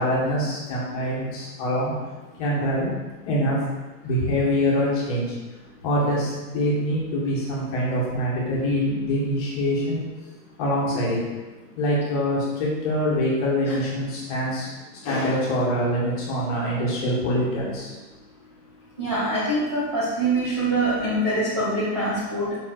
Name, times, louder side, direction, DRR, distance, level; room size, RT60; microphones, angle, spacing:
voice 1, 0.0-1.9 2.4-2.9 3.3-3.6 4.0-5.2 5.8-10.0 10.6-11.2 11.8-14.7 15.0-17.9, equal, 25° left, -5 dB, 1.7 m, -24 dB
voice 2, 19.0-22.6, right 1 dB, 20° right, -9 dB, 0.5 m, -24 dB
6.0 x 4.8 x 6.1 m, 1.2 s
hypercardioid pair, 175°, 49 cm